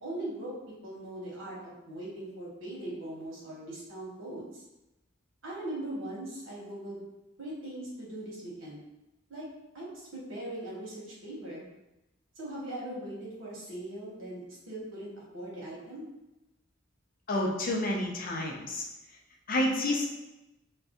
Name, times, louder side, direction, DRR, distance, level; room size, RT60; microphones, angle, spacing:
voice 1, 0.0-4.6 5.4-7.0 7.4-8.8 9.3-9.5 9.7-11.7 12.4-16.1, right 1 dB, 85° right, -5 dB, 1.1 m, -40 dB
voice 2, 17.3-18.8 19.5-20.1, left 1 dB, 45° left, -1 dB, 0.5 m, -29 dB
2.6 x 2.2 x 3.5 m, 0.96 s
head